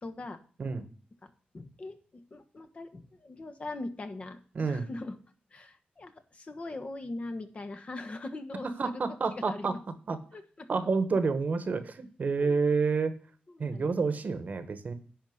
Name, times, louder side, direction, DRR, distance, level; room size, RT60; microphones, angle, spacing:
voice 1, 0.0-0.4 1.2-5.2 5.5-9.7 10.3-10.7 12.4-12.6 13.5-14.0, left 2 dB, 40° left, 7 dB, 1.4 m, -41 dB
voice 2, 4.5-4.9 8.8-9.7 10.1-10.2 10.7-13.1 13.6-14.9, right 4 dB, 55° right, 12 dB, 1.2 m, -29 dB
11.0 x 4.4 x 7.7 m, 0.43 s
wide cardioid pair, 100°, 3 cm